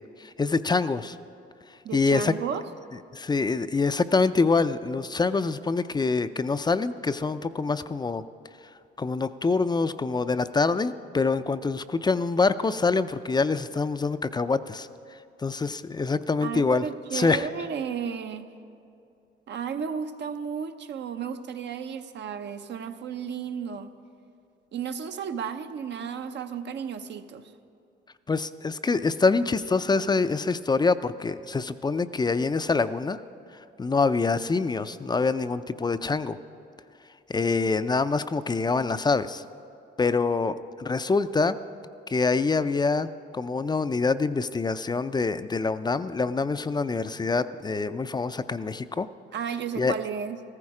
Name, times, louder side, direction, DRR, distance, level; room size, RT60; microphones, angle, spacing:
voice 1, 0.2-1.2 1.9-2.3 3.1-8.2 9.0-14.9 15.4-16.9 17.1-17.5 28.3-33.2 33.8-36.4 37.3-39.4 40.0-41.6 42.1-43.1 43.3-49.1 49.8-49.9, left 4 dB, 20° left, 12 dB, 0.4 m, -25 dB
voice 2, 1.8-2.6 16.4-18.5 19.5-23.9 24.7-27.5 49.3-50.4, right 7 dB, 60° right, 8 dB, 0.8 m, -33 dB
14.5 x 14.5 x 4.9 m, 2.5 s
cardioid pair, 90°, 20 cm